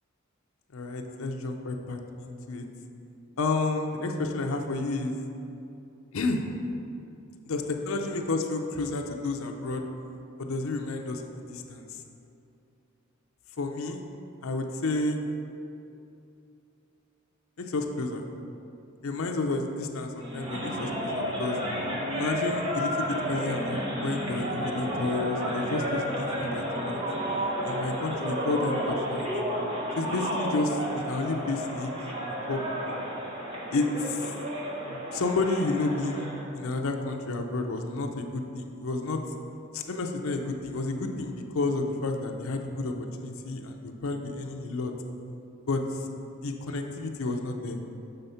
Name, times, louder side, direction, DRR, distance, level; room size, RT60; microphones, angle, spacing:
voice 1, 0.7-2.6 3.4-5.1 6.1-6.4 7.5-9.8 10.4-11.2 11.5-12.0 13.6-14.0 14.4-15.2 17.6-18.3 19.0-21.6 22.1-27.0 27.6-29.3 29.9-31.9 32.5-33.0 33.7-34.3 34.9-36.3 36.5-39.2 39.7-42.9 43.2-44.9 45.7-46.1 46.4-47.8, left 3 dB, 75° left, 3 dB, 0.6 m, -31 dB
sound 1, 20.2-36.4, equal, 25° right, 0.9 m, -32 dB
6.9 x 3.5 x 5.6 m, 2.7 s
head